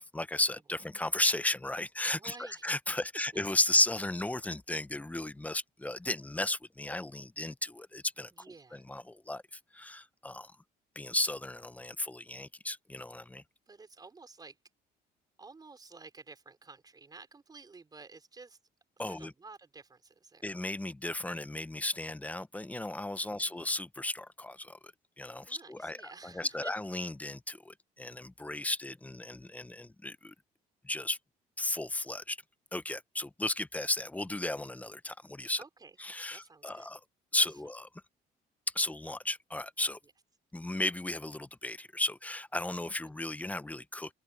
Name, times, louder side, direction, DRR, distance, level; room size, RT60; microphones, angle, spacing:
voice 1, 0.0-8.3 8.7-10.5 11.0-13.4 19.0-19.3 20.4-30.3 30.8-31.2 31.6-32.4 32.7-35.6 36.0-37.0 37.3-37.9 38.7-40.0 40.5-44.1, left 2 dB, 10° left, 0.6 m, -34 dB
voice 2, 2.0-2.7 3.1-3.4 8.3-8.8 13.7-14.6 15.4-18.6 19.0-20.5 23.3-23.7 25.5-26.8 35.6-36.0 36.3-36.9 37.4-37.5 40.0-40.1, right 4 dB, 25° right, 4.7 m, -52 dB
open air
cardioid pair, 110°, 17 cm